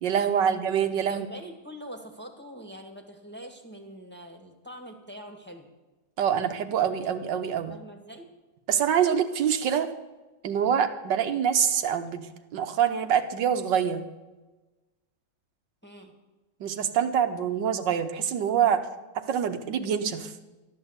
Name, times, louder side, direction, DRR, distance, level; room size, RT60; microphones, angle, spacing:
voice 1, 0.0-1.3 6.2-7.7 8.7-9.9 10.4-14.0 16.6-18.8 19.3-20.3, right 8 dB, 80° right, 8 dB, 1.6 m, -25 dB
voice 2, 1.1-5.7 6.6-8.3 15.8-16.1, equal, 5° left, 3 dB, 1.5 m, -44 dB
13.0 x 11.0 x 8.0 m, 1.2 s
omnidirectional pair, 1.9 m